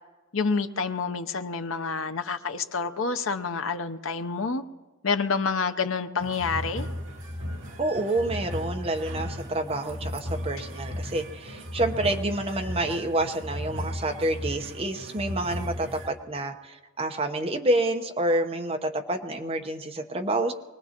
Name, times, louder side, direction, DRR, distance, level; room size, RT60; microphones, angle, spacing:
voice 1, 0.3-4.6 5.0-6.9, left 4 dB, 75° left, 0.8 m, -28 dB
sound 1, 6.2-16.1, left 1 dB, 70° right, 2.4 m, -35 dB
voice 2, 7.8-20.5, right 1 dB, 25° right, 0.9 m, -28 dB
24.5 x 19.5 x 3.0 m
head